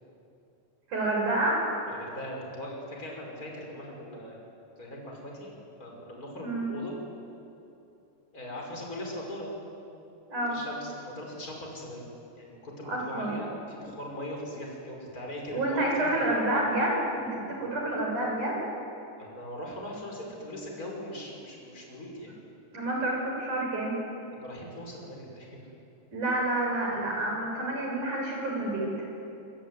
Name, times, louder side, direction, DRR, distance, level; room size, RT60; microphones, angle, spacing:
voice 1, 0.9-1.6 6.4-6.7 10.3-10.6 12.9-13.3 15.5-18.6 22.7-24.0 26.1-28.9, right 1 dB, 75° right, -1 dB, 8.5 m, -28 dB
voice 2, 1.9-4.4 4.8-5.5 5.8-7.0 8.3-9.5 10.5-16.4 19.2-22.3 24.3-25.6, left 1 dB, 25° left, 0 dB, 6.0 m, -40 dB
25.5 x 24.0 x 9.6 m, 2.7 s
omnidirectional pair, 3.5 m